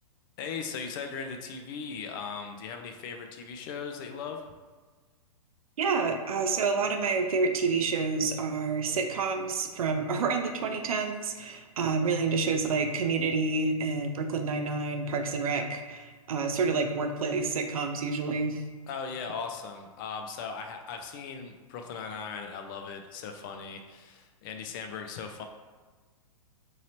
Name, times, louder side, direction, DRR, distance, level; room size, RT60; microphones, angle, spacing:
voice 1, 0.4-4.5 18.9-25.4, left 5 dB, 35° left, 4 dB, 0.3 m, -38 dB
voice 2, 5.8-18.6, right 4 dB, 70° right, 5 dB, 0.5 m, -28 dB
3.0 x 2.7 x 2.8 m, 1.4 s
figure-of-eight pair, 115°, 19 cm